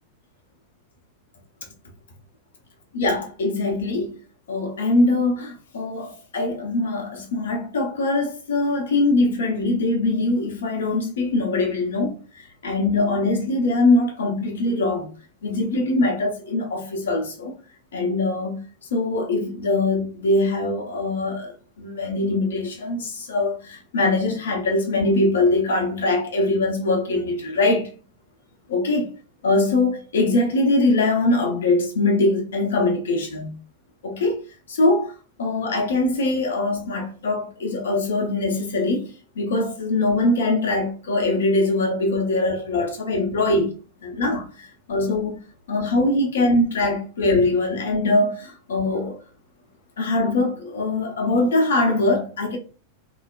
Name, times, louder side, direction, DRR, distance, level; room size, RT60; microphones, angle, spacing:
voice 1, 2.9-4.1 4.5-15.1 15.4-17.5 17.9-18.6 18.9-27.9 28.7-29.1 29.4-33.5 34.0-34.4 34.7-39.1 39.4-43.7 44.0-45.4 45.7-49.2 50.0-52.6, left 2 dB, 65° left, 0.7 m, -22 dB
3.1 x 2.1 x 2.3 m
figure-of-eight pair, 90°, 0 cm